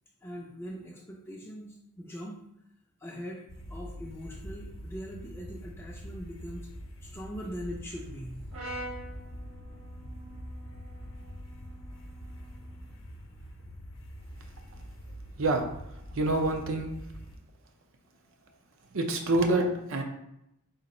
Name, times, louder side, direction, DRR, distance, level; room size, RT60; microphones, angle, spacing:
voice 1, 0.2-2.4 3.0-3.4 3.7-6.7 7.0-8.4, equal, 10° left, -3 dB, 0.4 m, -41 dB
sound 1, 3.5-17.4, equal, 60° left, 0.6 m, -44 dB
Brass instrument, 8.5-12.8, right 1 dB, 85° right, 1.4 m, -45 dB
voice 2, 15.4-15.7 16.1-16.9 18.9-20.0, right 2 dB, 70° right, 4 dB, 0.6 m, -26 dB
3.9 x 2.4 x 4.2 m, 0.82 s
head